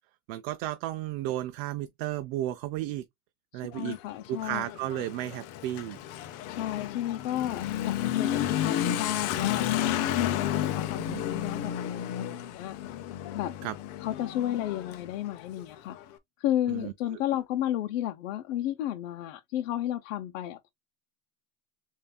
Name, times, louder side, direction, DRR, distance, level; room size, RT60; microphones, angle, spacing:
voice 1, 0.3-3.0 3.5-4.0 4.3-6.0 11.0-11.3 13.6-13.7 16.7-17.2, right 14 dB, 55° right, 0.5 m, -33 dB
voice 2, 3.5-4.7 6.5-9.7 10.2-12.8 13.3-13.5 14.0-16.0 16.4-20.7, left 12 dB, 85° left, 0.8 m, -32 dB
Motorcycle / Accelerating revving vroom, 3.7-16.0, left 11 dB, 40° left, 0.7 m, -32 dB
6.8 x 2.7 x 2.3 m
cardioid pair, 165°, 38 cm